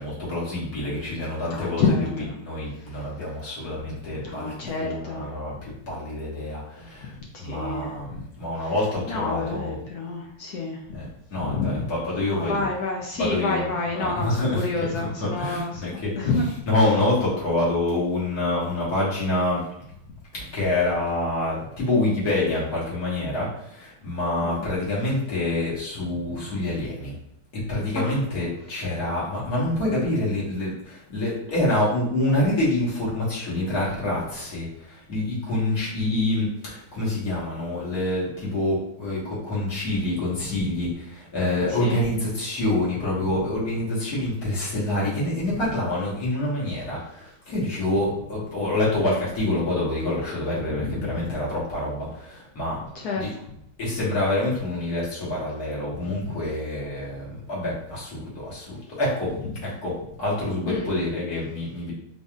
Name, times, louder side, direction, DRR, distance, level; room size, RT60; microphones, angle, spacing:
voice 1, 0.0-1.8 2.4-4.5 4.8-9.8 10.9-12.7 13.2-13.7 13.9-16.3 16.7-19.6 20.3-27.2 27.5-52.8 53.1-53.3 53.8-59.3 59.6-61.9, left 1 dB, 55° left, -6 dB, 1.9 m, -27 dB
voice 2, 1.5-2.3 2.8-2.9 4.2-5.3 5.6-5.7 7.4-8.0 8.6-8.7 9.1-11.0 11.4-11.8 12.2-15.8 16.2-16.5 20.0-20.1 24.4-24.7 26.2-26.4 27.9-28.1 40.4-40.6 41.7-42.0 50.7-51.4 52.9-53.3 60.7-60.9, left 3 dB, 70° left, 0 dB, 0.9 m, -29 dB
3.9 x 3.4 x 2.4 m, 0.78 s
omnidirectional pair, 2.1 m